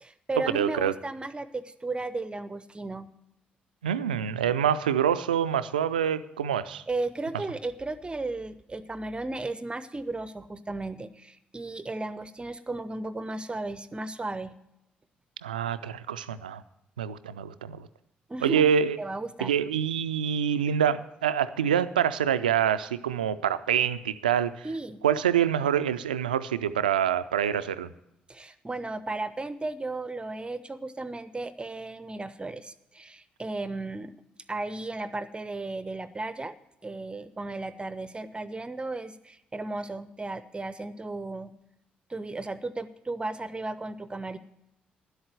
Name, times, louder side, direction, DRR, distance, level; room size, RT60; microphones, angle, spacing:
voice 1, 0.0-3.1 6.9-14.5 18.3-18.7 19.0-19.5 24.6-25.0 28.3-34.1 34.5-36.5 36.8-41.5 42.1-44.4, right 2 dB, 20° right, 14 dB, 0.6 m, -35 dB
voice 2, 0.5-0.9 3.8-6.8 15.4-16.6 17.0-17.8 18.4-19.0 19.4-24.7 25.0-27.9, right 9 dB, 80° right, 14 dB, 0.3 m, -26 dB
11.0 x 8.0 x 7.6 m, 0.84 s
figure-of-eight pair, 40°, 5 cm